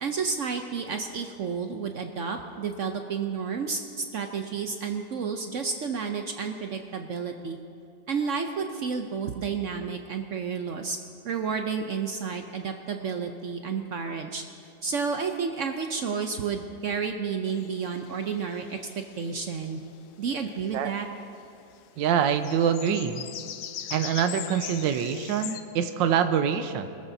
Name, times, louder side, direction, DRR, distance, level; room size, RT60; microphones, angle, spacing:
voice 1, 0.0-7.6 8.1-11.0 11.2-14.4 14.8-19.8 20.2-21.1, right 5 dB, 65° right, 5 dB, 0.8 m, -31 dB
sound 1, 17.5-20.7 21.0-21.4 21.7-25.6, left 9 dB, 65° left, 1.1 m, -41 dB
voice 2, 22.0-23.2 23.9-26.9, right 8 dB, 90° right, 8 dB, 1.4 m, -25 dB
23.0 x 13.5 x 2.7 m, 2.5 s
omnidirectional pair, 2.0 m